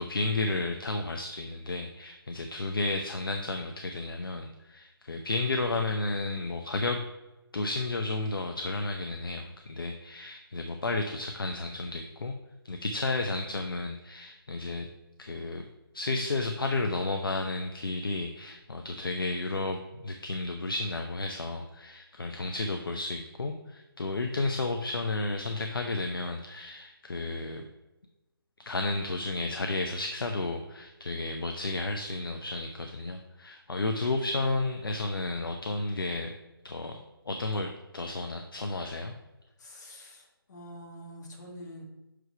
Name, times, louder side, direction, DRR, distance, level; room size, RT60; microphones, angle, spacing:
voice 1, 0.0-7.0 7.5-12.3 12.6-14.9 15.2-15.6 15.9-27.7 28.7-36.3 36.6-37.0 37.3-39.1, left 2 dB, 60° left, 4 dB, 0.7 m, -32 dB
voice 2, 39.6-41.8, equal, 45° left, 0 dB, 1.7 m, -46 dB
6.1 x 5.0 x 4.5 m, 1.0 s
figure-of-eight pair, 150°, 13 cm